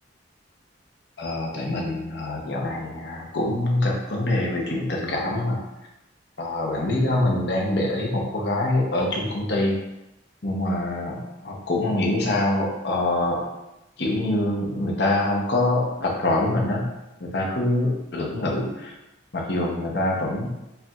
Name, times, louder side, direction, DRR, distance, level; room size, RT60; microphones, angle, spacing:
voice 1, 1.2-5.6 6.4-9.7 10.4-13.4 14.0-16.8 17.3-18.9 19.3-20.5, left 1 dB, 65° left, -1 dB, 0.8 m, -25 dB
5.4 x 2.9 x 2.4 m, 0.94 s
head